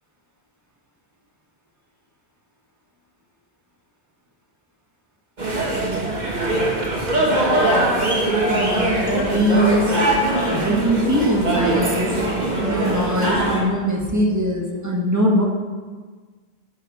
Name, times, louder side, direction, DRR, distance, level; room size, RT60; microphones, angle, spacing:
sound 1, 5.4-13.6, right 1 dB, 40° right, 1.6 m, -21 dB
voice 1, 8.4-10.0 10.5-12.1 12.6-15.4, equal, 15° right, -2 dB, 1.3 m, -21 dB
11.5 x 5.8 x 4.8 m, 1.5 s
omnidirectional pair, 1.1 m